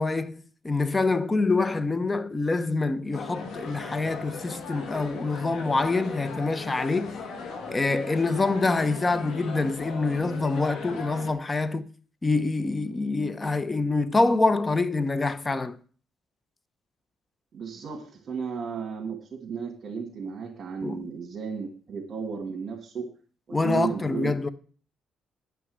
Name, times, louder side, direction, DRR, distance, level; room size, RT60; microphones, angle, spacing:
voice 1, 0.0-7.1 7.7-11.9 12.2-15.8 20.8-21.1 23.5-24.5, left 3 dB, 20° left, 0.8 m, -26 dB
sound 1, 3.1-11.3, left 4 dB, 70° left, 2.1 m, -38 dB
voice 2, 17.5-23.1 23.5-24.4, right 6 dB, 50° right, 2.5 m, -34 dB
10.5 x 6.0 x 8.0 m
cardioid pair, 90°, 0 cm